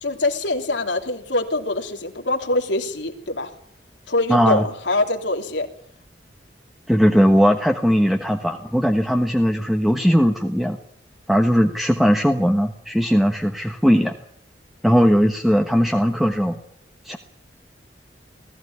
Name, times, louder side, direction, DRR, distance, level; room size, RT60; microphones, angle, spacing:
voice 1, 0.0-3.5 4.1-5.7, left 2 dB, 80° left, 3 dB, 3.1 m, -24 dB
voice 2, 4.3-4.6 6.9-10.8 11.3-14.1 14.8-16.5 17.0-17.2, equal, ahead, 4 dB, 1.2 m, -18 dB
19.5 x 15.5 x 9.7 m, 0.65 s
head